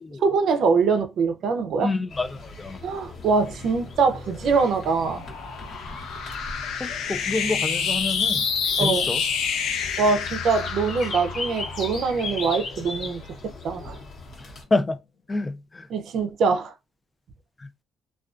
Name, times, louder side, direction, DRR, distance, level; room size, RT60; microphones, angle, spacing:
voice 1, 0.2-1.9 2.8-5.2 8.8-9.1 10.0-13.2 13.6-14.0 15.9-16.7, right 4 dB, 70° right, 0.5 m, -23 dB
voice 2, 1.8-2.8 6.8-8.5 8.8-9.2 14.4-15.0 15.3-15.9 17.6-17.7, left 2 dB, 25° left, 0.3 m, -28 dB
sound 1, 2.1-14.6, left 3 dB, 65° left, 1.0 m, -38 dB
sound 2, 4.2-12.9, left 6 dB, 85° left, 0.5 m, -28 dB
2.3 x 2.2 x 2.4 m
cardioid pair, 90°, 0 cm